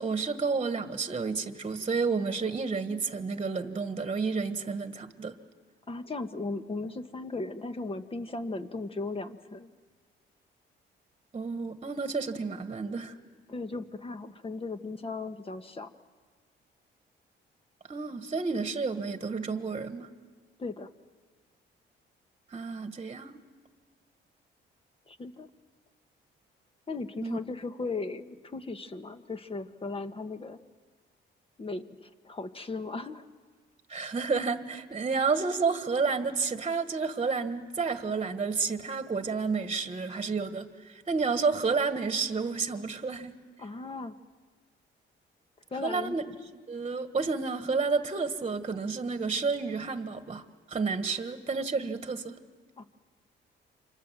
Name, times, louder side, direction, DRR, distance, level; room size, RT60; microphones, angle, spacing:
voice 1, 0.0-5.3 11.3-13.1 17.9-20.1 22.5-23.4 27.2-27.4 33.9-43.3 45.8-46.2 46.7-52.4, right 4 dB, 30° right, 9 dB, 1.6 m, -30 dB
voice 2, 5.9-9.7 13.5-15.9 20.6-20.9 25.1-25.5 26.9-30.6 31.6-33.2 43.6-44.1 45.7-46.2 52.8-52.9, left 3 dB, 30° left, 8 dB, 1.5 m, -37 dB
29.0 x 26.5 x 7.6 m, 1.5 s
cardioid pair, 90°, 20 cm